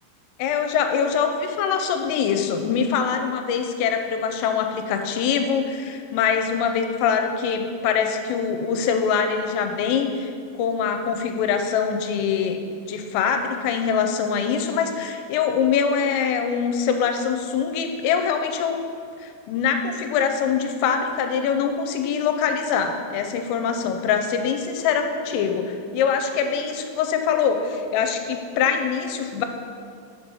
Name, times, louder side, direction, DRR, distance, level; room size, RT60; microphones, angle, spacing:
voice 1, 0.4-10.3 10.6-12.6 12.9-18.8 19.2-29.5, left 6 dB, 85° left, 6 dB, 3.2 m, -23 dB
7.5 x 6.3 x 5.4 m, 2.3 s
omnidirectional pair, 5.8 m